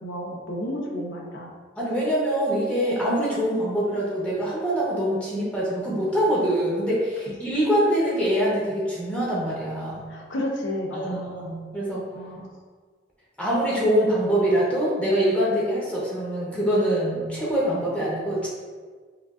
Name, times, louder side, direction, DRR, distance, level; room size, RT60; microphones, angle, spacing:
voice 1, 0.0-1.5 7.2-7.3 10.1-11.5 12.1-12.5, left 1 dB, 85° left, -1 dB, 0.8 m, -32 dB
voice 2, 1.8-10.0 10.9-12.0 13.4-18.5, equal, 5° left, -7 dB, 0.9 m, -24 dB
5.7 x 2.5 x 2.4 m, 1.5 s
head